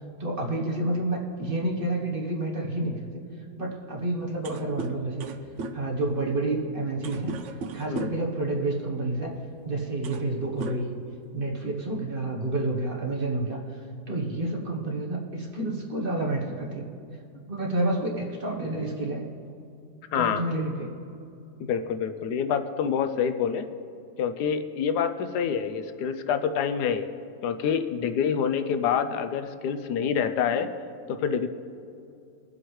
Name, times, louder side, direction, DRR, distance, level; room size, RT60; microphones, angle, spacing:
voice 1, 0.0-3.1 3.6-5.3 5.7-9.3 9.6-10.9 11.3-13.8 14.1-16.9 17.5-19.3 20.1-21.0, right 2 dB, 35° right, -1 dB, 1.2 m, -29 dB
sound 1, 4.0-4.1 4.3-8.3 9.3-9.5 9.9-10.3 10.6-11.5, right 4 dB, 65° right, 0.7 m, -37 dB
voice 2, 20.1-20.4 21.6-23.7 24.2-27.1 27.4-30.7 31.1-31.5, left 7 dB, 80° left, 9 dB, 1.1 m, -27 dB
21.5 x 7.8 x 3.2 m, 2.6 s
omnidirectional pair, 1.8 m